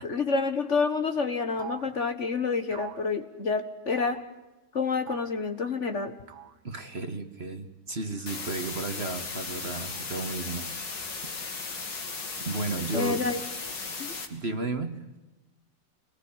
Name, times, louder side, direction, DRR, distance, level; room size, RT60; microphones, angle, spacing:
voice 1, 0.0-4.2 4.7-6.1 12.9-13.4 14.0-14.1, left 4 dB, 45° left, 8 dB, 1.7 m, -28 dB
sound 1, 1.6-1.9 2.7-3.1 3.9-4.3 5.1-5.4 6.3-6.6 8.0-8.5 9.4-10.1, right 9 dB, 70° right, 1.9 m, -44 dB
voice 2, 6.6-11.3 12.4-13.3 14.3-15.0, right 3 dB, 35° right, 7 dB, 1.7 m, -34 dB
sound 2, 8.3-14.3, left 4 dB, 80° left, 3.1 m, -36 dB
27.0 x 19.5 x 9.0 m, 1.1 s
omnidirectional pair, 1.9 m